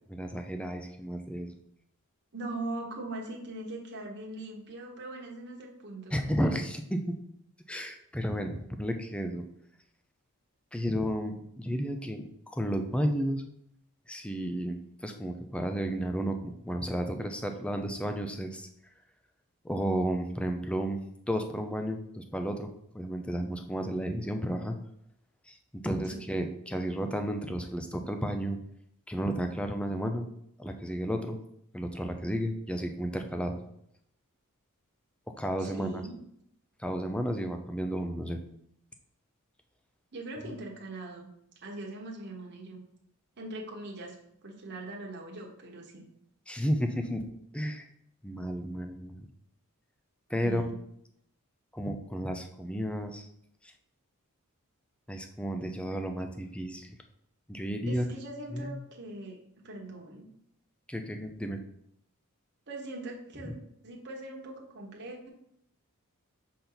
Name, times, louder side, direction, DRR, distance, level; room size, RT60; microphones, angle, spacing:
voice 1, 0.1-1.5 6.1-7.2 7.7-9.4 10.7-13.4 14.1-18.7 19.6-21.0 21.3-22.7 22.9-24.8 25.5-25.6 25.8-28.6 29.1-30.3 30.6-31.4 31.7-33.6 35.4-36.0 36.8-38.4 40.4-40.5 46.5-47.2 47.5-47.9 48.2-49.3 50.3-50.7 51.7-53.3 53.6-53.7 55.1-57.0 57.5-58.1 58.5-58.7 60.9-61.6 63.4-63.5, equal, 5° left, 6 dB, 0.5 m, -32 dB
voice 2, 2.3-6.7 26.1-26.2 35.6-36.1 40.1-41.3 41.6-42.8 43.4-44.2 44.4-46.0 50.4-50.8 57.9-60.3 62.7-63.5 63.8-65.3, right 2 dB, 50° right, -1 dB, 1.2 m, -41 dB
6.7 x 4.3 x 4.0 m, 0.73 s
head